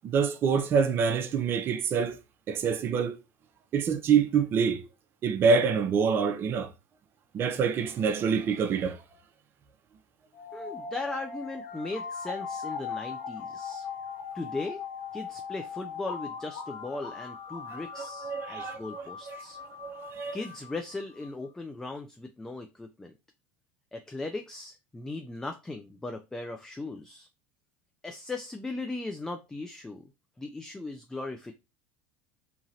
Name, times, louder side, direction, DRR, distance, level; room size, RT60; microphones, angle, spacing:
voice 1, 0.0-2.2 2.5-3.2 3.7-4.9 5.2-6.7 7.3-9.0 17.7-17.8 18.2-19.4 19.8-20.4, right 6 dB, 40° right, 0.5 m, -26 dB
sound 1, 10.3-21.3, left 6 dB, 70° left, 1.1 m, -40 dB
voice 2, 10.5-13.9 14.3-14.8 15.1-19.6 20.3-23.1 23.9-27.3 28.0-30.1 30.4-31.5, left 2 dB, 10° left, 0.3 m, -38 dB
2.9 x 2.4 x 2.7 m
supercardioid pair, 110°, 6 cm